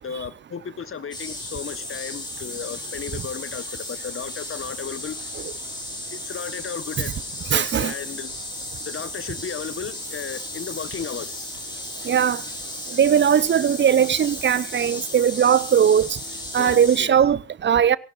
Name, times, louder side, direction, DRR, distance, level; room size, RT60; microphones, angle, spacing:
voice 1, 0.0-5.3 6.1-7.2 7.5-8.3 8.8-11.5 16.6-17.2, left 7 dB, 35° left, 1.3 m, -34 dB
sound 1, 1.1-17.0, left 2 dB, 10° left, 7.9 m, -35 dB
sound 2, 4.6-17.3, right 5 dB, 70° right, 4.1 m, -51 dB
voice 2, 7.5-7.9 12.0-12.4 13.0-16.1 16.5-18.0, right 8 dB, 30° right, 0.7 m, -19 dB
22.5 x 17.5 x 2.6 m
figure-of-eight pair, 45°, 37 cm